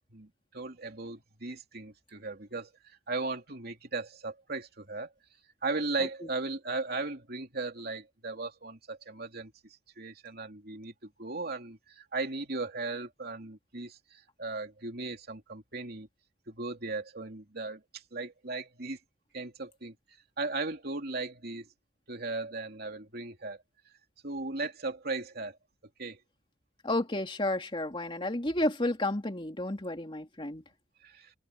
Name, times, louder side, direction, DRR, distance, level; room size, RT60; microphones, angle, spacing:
voice 1, 0.1-5.1 5.6-9.5 10.0-16.1 16.5-19.0 19.3-19.9 20.4-21.7 22.1-23.6 24.2-25.6 26.0-26.2 31.0-31.3, right 3 dB, 55° right, 3.1 m, -37 dB
voice 2, 26.8-30.6, left 1 dB, 25° left, 2.7 m, -31 dB
head